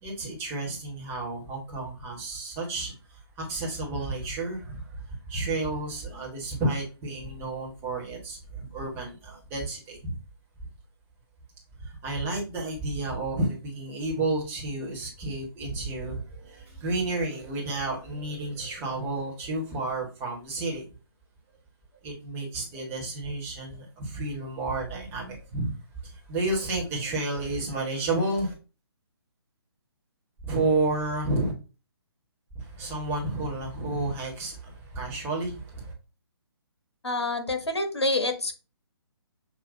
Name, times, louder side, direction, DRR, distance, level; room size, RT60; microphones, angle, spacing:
voice 1, 0.0-5.0 5.3-10.2 11.8-20.9 22.0-25.7 26.0-28.5 30.4-31.5 32.6-35.9, right 2 dB, 15° right, 1.6 m, -31 dB
voice 2, 37.0-38.5, left 2 dB, 75° left, 1.3 m, -27 dB
6.8 x 2.8 x 2.7 m
figure-of-eight pair, 140°, 14 cm